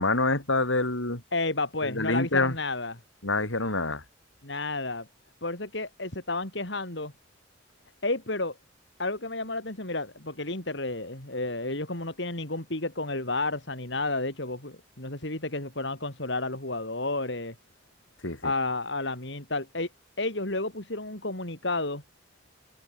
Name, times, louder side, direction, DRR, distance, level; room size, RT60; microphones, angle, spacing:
voice 1, 0.0-1.2 1.8-2.5 3.2-4.0 18.2-18.5, left 2 dB, 85° left, 6.4 m, -26 dB
voice 2, 1.3-3.0 4.4-5.1 5.4-7.1 8.0-8.6 9.0-17.6 18.4-19.9 20.2-22.0, left 2 dB, 65° left, 4.0 m, -31 dB
head